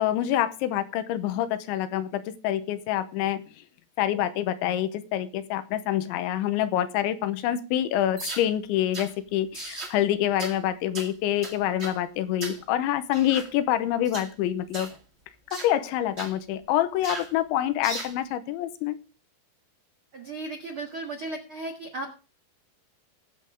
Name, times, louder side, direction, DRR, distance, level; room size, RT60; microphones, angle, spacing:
voice 1, 0.0-3.4 4.0-14.9 15.5-19.0, left 12 dB, 90° left, 3.2 m, -26 dB
sound 1, 8.2-8.5 8.9-9.1 9.5-10.0 10.4-10.6 10.9-11.1 11.4-12.0 12.4-12.6 13.1-13.5 14.0-14.3 14.7-15.0 15.5-15.7 16.2-16.3 17.0-17.3 17.8-18.1, right 2 dB, 45° right, 0.8 m, -37 dB
voice 2, 20.1-22.2, right 2 dB, 75° right, 1.2 m, -35 dB
20.0 x 7.6 x 3.5 m
omnidirectional pair, 5.3 m